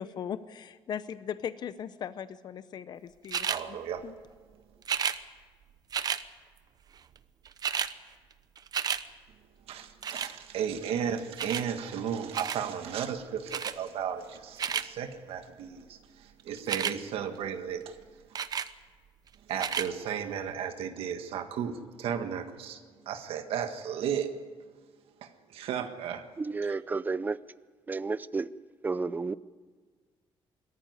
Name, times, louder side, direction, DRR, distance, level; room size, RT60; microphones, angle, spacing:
voice 1, 0.0-3.8 4.0-4.1, left 8 dB, 45° left, 0.7 m, -38 dB
sound 1, 3.3-3.6 4.8-5.2 5.9-6.2 7.2-7.3 7.4-7.9 8.3-9.0 10.0-10.3 11.4-11.7 12.3-12.6 13.5-13.8 14.4-14.9 16.6-17.0 18.3-18.7 19.5-19.9 20.5-20.6, right 7 dB, 45° right, 0.9 m, -31 dB
voice 2, 3.5-4.0 9.7-18.0 19.5-24.3 25.2-26.2 26.6-26.7, right 8 dB, 80° right, 1.6 m, -34 dB
voice 3, 26.4-27.4 27.9-28.5 28.8-29.3, right 4 dB, 20° right, 0.5 m, -31 dB
22.0 x 14.0 x 9.6 m
cardioid pair, 135°, 10 cm